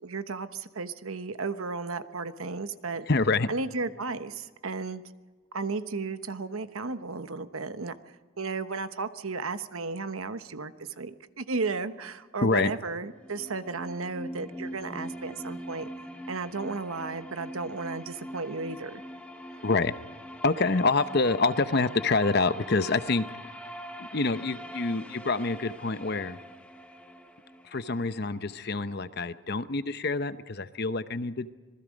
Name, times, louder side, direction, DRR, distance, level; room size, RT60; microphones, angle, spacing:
voice 1, 0.0-3.1 3.5-5.0 5.5-15.9 16.3-19.0, right 4 dB, 75° right, 10 dB, 1.1 m, -34 dB
voice 2, 3.1-3.5 12.4-12.7 19.6-19.9 20.4-23.2 24.0-26.4 27.6-31.5, left 3 dB, 50° left, 12 dB, 0.8 m, -26 dB
sound 1, 13.0-29.0, equal, 5° left, 1.3 m, -43 dB
26.5 x 20.0 x 5.2 m, 1.4 s
head